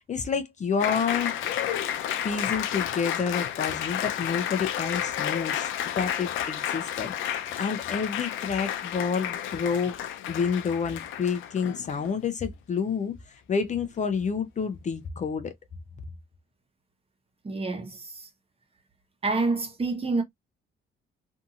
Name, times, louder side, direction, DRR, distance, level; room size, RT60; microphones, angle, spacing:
voice 1, 0.1-1.4 2.2-9.9 10.3-15.5, left 6 dB, 35° left, 0.5 m, -29 dB
Applause, 0.8-12.1, left 10 dB, 85° left, 0.5 m, -31 dB
voice 2, 17.4-18.3 19.2-20.2, right 3 dB, 30° right, 1.0 m, -28 dB
2.7 x 2.6 x 2.4 m
cardioid pair, 90°, 20 cm